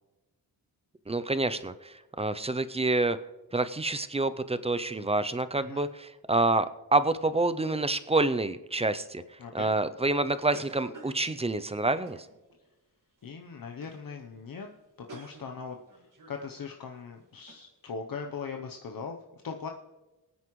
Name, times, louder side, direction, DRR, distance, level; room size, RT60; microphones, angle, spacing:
voice 1, 1.1-3.2 3.5-9.2 9.5-12.3, right 2 dB, 15° right, 12 dB, 0.3 m, -28 dB
voice 2, 9.4-9.7 13.2-14.7 15.1-19.7, left 5 dB, 55° left, 3 dB, 0.8 m, -40 dB
sound 1, 10.0-12.7 13.2-13.4 13.8-14.1 14.3-14.4 14.7-16.5 17.0-17.1 17.5-17.7, right 2 dB, 50° right, 1.8 m, -51 dB
22.5 x 9.5 x 3.1 m, 1.1 s
wide cardioid pair, 165°, 40 cm